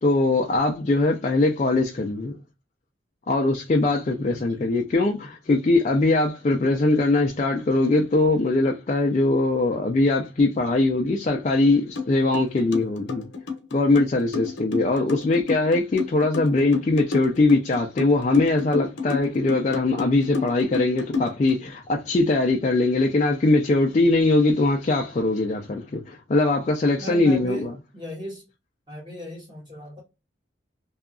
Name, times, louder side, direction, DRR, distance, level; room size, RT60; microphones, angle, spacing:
voice 1, 0.0-2.3 3.3-13.2 13.7-27.7, left 2 dB, 35° left, 0.3 m, -21 dB
voice 2, 4.3-4.8 27.0-27.7 27.9-28.4 28.9-30.0, left 1 dB, 25° right, 1.1 m, -36 dB
sound 1, 12.0-12.1 12.3-21.5, left 4 dB, 75° left, 0.8 m, -29 dB
2.7 x 2.3 x 2.3 m
head